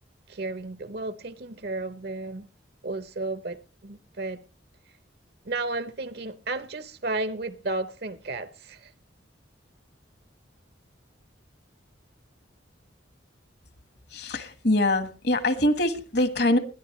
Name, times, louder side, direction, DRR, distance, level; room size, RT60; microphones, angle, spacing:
voice 1, 0.3-2.5 2.8-4.4 5.4-8.9, right 2 dB, 55° right, 0.8 m, -33 dB
voice 2, 14.1-16.6, left 1 dB, 55° left, 1.4 m, -24 dB
21.0 x 13.0 x 3.1 m
head